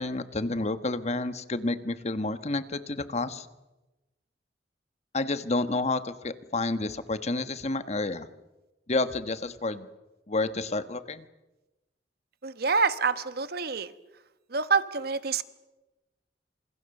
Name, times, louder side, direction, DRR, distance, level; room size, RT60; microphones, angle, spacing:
voice 1, 0.0-3.5 5.1-8.3 8.9-9.9 10.3-11.2, left 2 dB, 40° left, 11 dB, 1.3 m, -30 dB
voice 2, 12.4-13.9 14.5-15.4, right 5 dB, 60° right, 12 dB, 1.3 m, -27 dB
28.0 x 27.5 x 6.7 m, 1.0 s
head